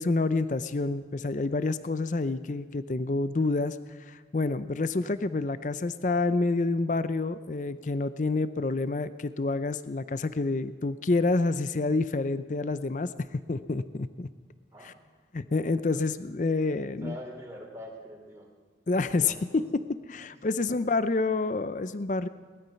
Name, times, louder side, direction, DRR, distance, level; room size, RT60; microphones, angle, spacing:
voice 1, 0.0-3.8 4.1-13.1 13.5-14.3 14.8-14.9 15.3-17.2 18.9-19.6 20.1-22.3, left 3 dB, 45° left, 13 dB, 0.5 m, -28 dB
voice 2, 16.8-18.5 18.9-19.6 20.6-20.8, equal, 15° right, -1 dB, 3.1 m, -45 dB
19.0 x 13.5 x 5.7 m, 1.5 s
head